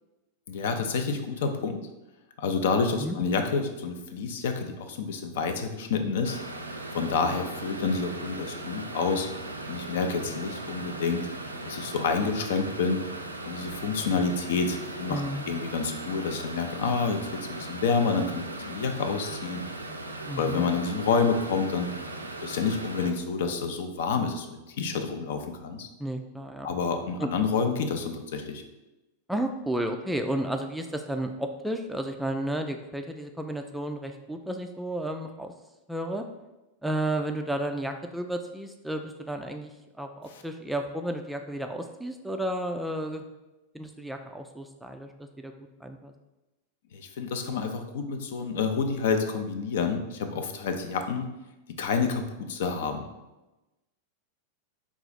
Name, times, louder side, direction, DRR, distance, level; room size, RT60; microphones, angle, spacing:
voice 1, 0.5-1.8 2.4-6.4 6.9-9.3 9.7-11.3 11.6-13.0 13.5-15.2 15.5-19.7 20.4-21.9 22.4-25.9 26.6-28.6 40.3-40.4 46.9-51.3 51.8-53.1, left 5 dB, 55° left, 6 dB, 0.5 m, -28 dB
sound 1, 6.2-23.1, right 2 dB, 80° right, 0.4 m, -38 dB
voice 2, 15.1-15.5 20.3-20.6 26.0-26.7 27.2-27.3 29.3-35.5 35.9-36.2 36.8-39.7 40.0-43.2 43.7-45.1 45.4-45.5 45.8-46.1, right 1 dB, 5° right, 5 dB, 0.3 m, -32 dB
4.7 x 2.4 x 4.0 m, 1.0 s
figure-of-eight pair, 90°, 0 cm